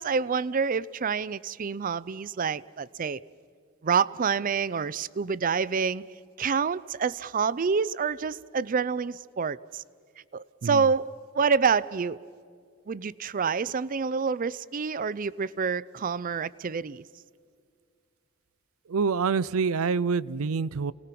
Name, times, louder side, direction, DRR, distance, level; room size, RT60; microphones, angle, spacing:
voice 1, 0.0-3.2 3.8-6.0 6.4-9.8 10.3-11.1 11.3-12.2 12.9-17.0, right 5 dB, 40° right, 0.5 m, -27 dB
voice 2, 18.9-20.9, right 5 dB, 90° right, 0.5 m, -26 dB
29.0 x 19.0 x 5.9 m
head